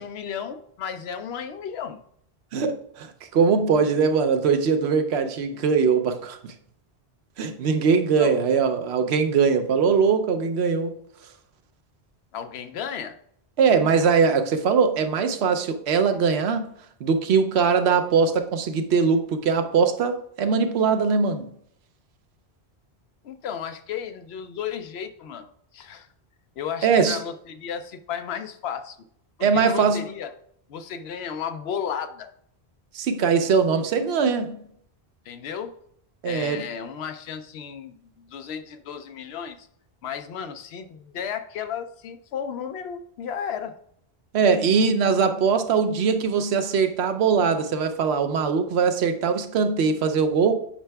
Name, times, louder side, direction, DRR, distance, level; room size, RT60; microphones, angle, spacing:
voice 1, 0.0-2.0 8.2-8.4 12.3-13.2 23.2-26.1 26.6-29.0 29.4-30.3 30.7-32.3 35.2-35.8 36.2-39.7 40.0-43.7, left 7 dB, 80° left, 0.9 m, -34 dB
voice 2, 2.5-6.5 7.4-10.9 13.6-16.7 17.0-21.5 26.8-27.2 29.4-30.0 32.9-34.6 36.2-36.6 44.3-50.5, right 5 dB, 90° right, 0.9 m, -21 dB
8.6 x 5.6 x 2.3 m
omnidirectional pair, 1.1 m